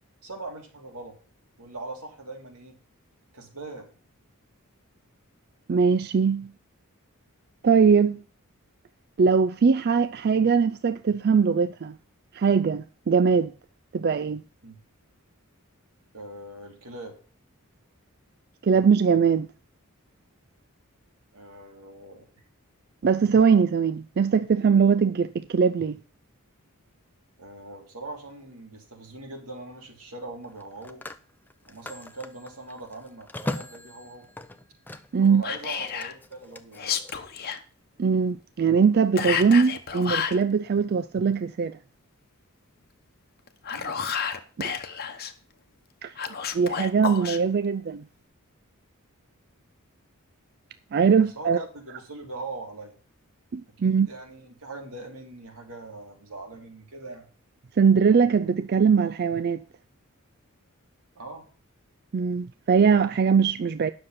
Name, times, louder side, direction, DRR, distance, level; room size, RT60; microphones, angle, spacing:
voice 1, 0.2-1.2 1.6-2.8 3.3-3.9 14.6-14.8 16.1-17.2 21.3-22.3 27.4-31.0 31.6-34.3 35.2-36.9 43.7-44.0 51.2-52.9 53.7-57.3 61.1-61.4, right 2 dB, 80° right, 3.0 m, -41 dB
voice 2, 5.7-6.5 7.6-8.2 9.2-12.0 12.3-13.5 13.9-14.4 18.6-19.5 23.0-26.0 35.1-35.4 38.0-41.7 44.6-44.8 46.0-46.1 46.5-48.0 50.9-51.6 53.5-54.1 57.8-59.6 62.1-63.9, right 6 dB, 45° right, 0.4 m, -21 dB
Telephone, 28.2-28.5 30.4-35.3 35.6-37.1, left 1 dB, 10° left, 0.6 m, -39 dB
Whispering, 35.4-36.1 36.7-37.6 39.2-40.4 43.5-45.3 46.2-47.4, left 7 dB, 45° left, 1.0 m, -30 dB
9.8 x 6.6 x 5.7 m
head